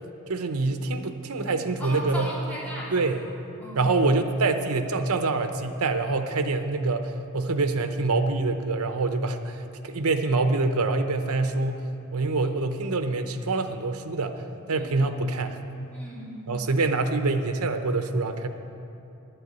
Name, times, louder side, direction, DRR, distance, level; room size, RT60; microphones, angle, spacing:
voice 1, 0.3-2.3 2.9-3.2 3.7-14.4 14.7-15.6 16.5-18.5, right 3 dB, 85° right, 7 dB, 0.8 m, -25 dB
voice 2, 1.8-3.3 3.6-4.1 14.7-15.1 15.9-16.4, equal, 5° left, -7 dB, 2.3 m, -37 dB
11.0 x 7.9 x 8.1 m, 2.8 s
head